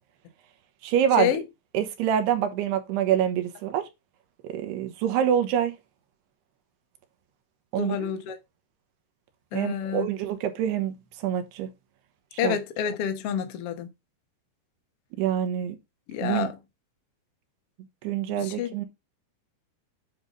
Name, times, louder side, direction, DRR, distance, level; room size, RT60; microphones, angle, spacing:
voice 1, 0.8-1.4 1.7-3.9 4.4-5.7 7.7-8.2 9.5-11.7 12.4-12.6 15.2-15.8 16.2-16.5 18.0-18.9, right 9 dB, 85° right, 3.3 m, -26 dB
voice 2, 7.8-8.4 9.5-10.1 12.4-13.9 16.1-16.5 18.4-18.7, left 9 dB, 85° left, 1.3 m, -28 dB
9.6 x 4.0 x 5.1 m
omnidirectional pair, 4.6 m